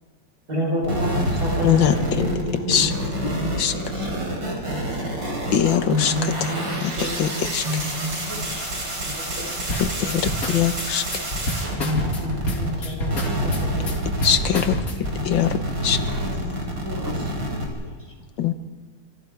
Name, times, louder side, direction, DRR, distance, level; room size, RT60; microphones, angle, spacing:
voice 1, 0.5-3.3 3.7-3.8 5.8-8.5 9.0-9.5 10.0-10.1 11.7-14.1 15.0-15.2, left 1 dB, 55° right, -3 dB, 5.2 m, -29 dB
sound 1, 0.8-12.8 13.1-17.7, right 1 dB, 80° right, 5.3 m, -28 dB
voice 2, 1.6-2.3 2.7-2.9 3.6-3.7 5.5-6.5 6.8-6.9 7.2-7.6 9.8-11.0 14.2-14.9 15.2-16.0 18.4-18.5, left 9 dB, 85° left, 9 dB, 2.0 m, -22 dB
voice 3, 3.5-4.8 5.1-5.2 6.5-6.8 7.2-7.5 7.9-9.0 9.3-9.5 11.0-11.3 11.5-11.9 12.7-13.0 13.3-13.4 16.0-18.3, left 2 dB, 10° left, -1 dB, 5.5 m, -40 dB
sound 2, 9.7-15.2, equal, 50° left, 2.7 m, -28 dB
27.0 x 24.5 x 4.8 m, 1.4 s
omnidirectional pair, 2.0 m